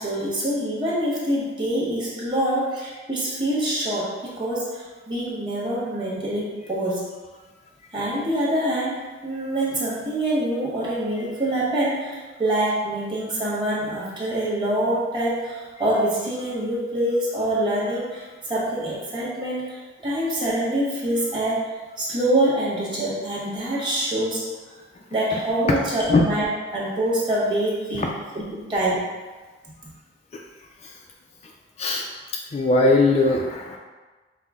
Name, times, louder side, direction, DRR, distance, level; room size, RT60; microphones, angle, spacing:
voice 1, 0.0-7.1 7.9-21.6 22.0-24.4 25.1-26.4 26.7-29.1, right 1 dB, 25° right, -8 dB, 1.2 m, -25 dB
voice 2, 32.5-33.8, left 2 dB, 35° left, 0 dB, 0.3 m, -20 dB
5.5 x 2.0 x 3.5 m, 1.3 s
head